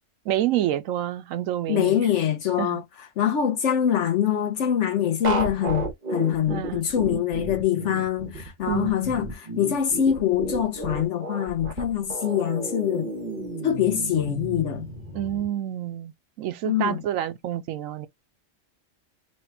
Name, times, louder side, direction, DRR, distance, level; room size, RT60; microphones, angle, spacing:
voice 1, 0.3-2.0 2.6-2.8 6.5-6.8 8.7-9.1 15.1-16.1 16.4-18.1, right 12 dB, 80° right, 1.0 m, -28 dB
voice 2, 1.7-2.8 3.2-13.1 13.6-14.9 16.6-17.0, left 9 dB, 70° left, 1.0 m, -24 dB
sound 1, 5.2-15.4, right 2 dB, 35° right, 1.1 m, -32 dB
3.3 x 2.3 x 4.2 m
omnidirectional pair, 1.4 m